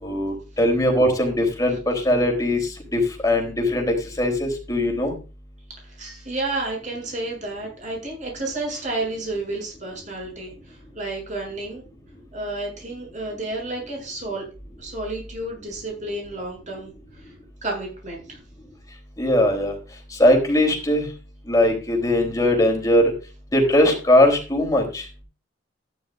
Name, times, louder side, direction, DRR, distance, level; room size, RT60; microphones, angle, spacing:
voice 1, 0.0-5.1 19.2-19.7 20.1-21.1 21.5-23.1 23.5-25.0, left 1 dB, 20° left, 1 dB, 3.6 m, -20 dB
voice 2, 5.8-11.8 12.3-14.5 14.8-16.9 17.2-17.3 17.6-18.4, right 2 dB, 40° right, 0 dB, 7.4 m, -31 dB
13.5 x 11.0 x 2.6 m, 0.33 s
head